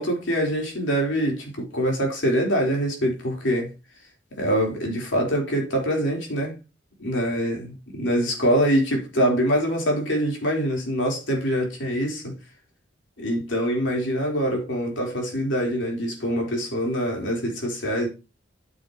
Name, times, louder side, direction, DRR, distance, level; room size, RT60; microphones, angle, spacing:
voice 1, 0.0-3.7 4.3-6.5 7.0-7.6 8.0-12.3 13.2-18.1, equal, 70° left, 3.9 m, -24 dB
9.5 x 9.4 x 3.0 m
head